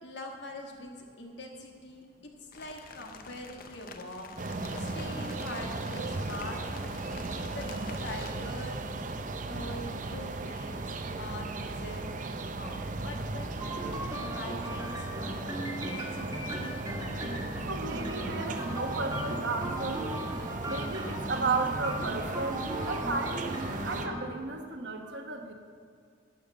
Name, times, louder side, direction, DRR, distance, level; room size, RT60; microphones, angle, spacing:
voice 1, 0.0-2.0 2.4-4.3 4.8-6.6 7.4-8.8 9.5-13.7 14.3-15.1 15.6-16.8, left 1 dB, 65° left, 1 dB, 1.6 m, -43 dB
sound 1, 2.5-8.3, left 4 dB, 50° left, 0.7 m, -48 dB
sound 2, 4.4-24.1, right 2 dB, 45° right, 0.6 m, -36 dB
sound 3, 13.6-24.2, equal, 20° right, 1.6 m, -38 dB
voice 2, 17.6-20.0 20.6-25.5, right 3 dB, 65° right, 4 dB, 1.2 m, -34 dB
12.0 x 5.6 x 7.3 m, 2.2 s
head